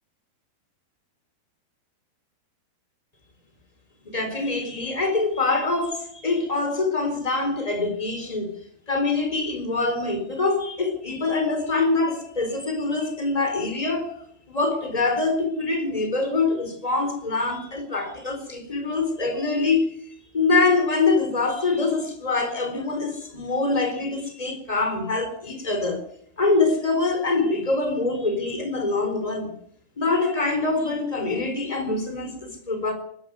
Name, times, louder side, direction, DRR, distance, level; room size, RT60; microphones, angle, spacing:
voice 1, 4.0-8.5 8.9-14.2 14.5-19.9 20.3-26.1 26.4-29.5 30.0-32.9, left 3 dB, 10° left, 7 dB, 4.0 m, -24 dB
20.0 x 14.5 x 9.5 m, 0.65 s
omnidirectional pair, 4.5 m